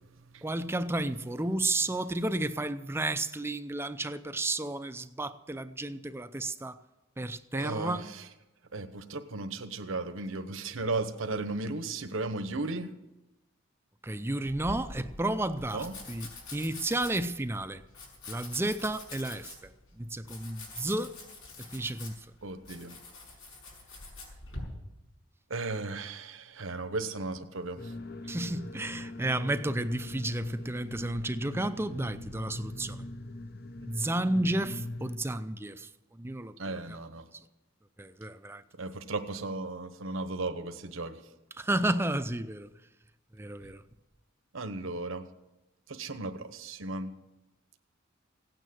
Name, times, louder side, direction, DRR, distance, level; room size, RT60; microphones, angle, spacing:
voice 1, 0.4-6.8 7.2-8.0 14.0-17.8 18.3-19.7 20.0-21.1 21.7-22.1 28.3-33.0 33.9-35.9 36.2-37.0 38.0-38.6 41.6-42.7 43.3-43.8, right 1 dB, 10° right, 0.5 m, -32 dB
voice 2, 7.5-8.3 8.7-12.9 15.7-15.9 22.4-23.0 25.5-27.9 36.6-37.3 38.7-41.2 44.5-45.3 45.9-47.1, right 3 dB, 75° right, 1.1 m, -35 dB
Domestic sounds home sounds, 14.4-24.6, left 2 dB, 80° left, 5.9 m, -46 dB
sound 1, 27.8-35.2, left 2 dB, 50° left, 0.8 m, -42 dB
16.5 x 9.2 x 7.7 m
head